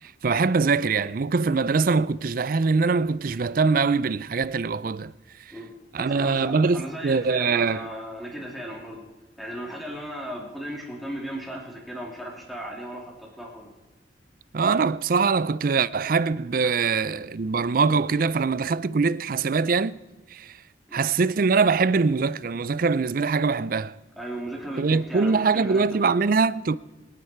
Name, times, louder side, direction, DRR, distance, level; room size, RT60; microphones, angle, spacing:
voice 1, 0.2-5.1 5.9-7.9 14.5-20.0 20.3-20.6 20.9-23.9 24.8-26.8, right 4 dB, 50° right, 0.4 m, -23 dB
voice 2, 6.0-9.0 9.4-13.7 16.7-16.8 20.9-21.0 24.2-26.3, equal, ahead, 3.0 m, -36 dB
27.0 x 9.8 x 4.5 m
head